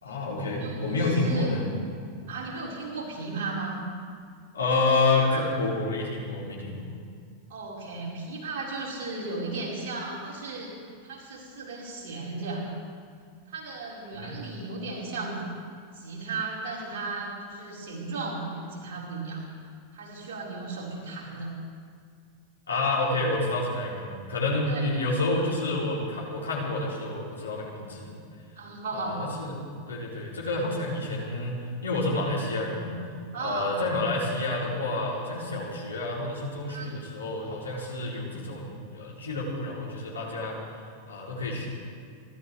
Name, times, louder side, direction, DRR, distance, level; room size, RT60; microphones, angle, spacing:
voice 1, 0.0-1.6 4.5-6.9 14.1-14.3 22.7-28.1 28.9-29.5 29.9-31.6 31.8-32.9 33.4-40.6 41.1-41.7, left 2 dB, 70° left, -3 dB, 3.4 m, -29 dB
voice 2, 0.6-1.5 2.3-3.8 5.2-5.4 5.9-6.0 7.5-10.7 11.0-12.7 13.5-15.4 15.9-19.4 19.9-21.5 24.7-25.1 28.6-29.2 33.3-33.8 36.7-37.0, right 3 dB, 50° right, -5 dB, 4.9 m, -35 dB
29.0 x 12.5 x 3.4 m, 2.1 s
figure-of-eight pair, 90°, 0 cm